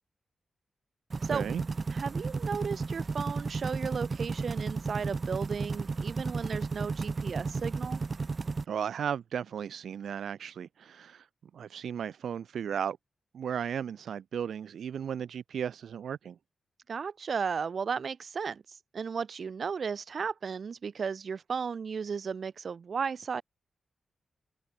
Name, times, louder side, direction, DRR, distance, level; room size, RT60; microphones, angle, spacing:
sound 1, 1.1-8.6, right 4 dB, 40° right, 1.7 m, -33 dB
voice 1, 1.2-1.6 8.7-11.3 11.5-13.0 13.3-16.4, right 8 dB, 85° right, 5.3 m, -35 dB
voice 2, 1.9-8.0 16.9-23.4, right 6 dB, 60° right, 7.5 m, -35 dB
open air
wide cardioid pair, 105°, 0 cm